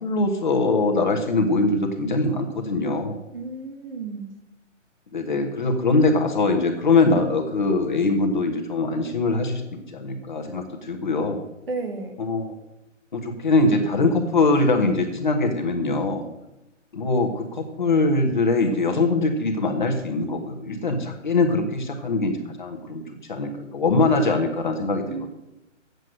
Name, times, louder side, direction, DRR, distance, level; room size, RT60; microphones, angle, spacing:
voice 1, 0.0-3.2 5.1-11.4 12.2-12.5 13.1-16.2 16.9-25.3, left 3 dB, 40° left, 3 dB, 1.3 m, -22 dB
voice 2, 3.3-4.3 11.7-12.2 25.1-25.3, right 3 dB, 45° right, 4 dB, 1.8 m, -32 dB
9.3 x 8.0 x 6.5 m, 0.92 s
hypercardioid pair, 180°, 38 cm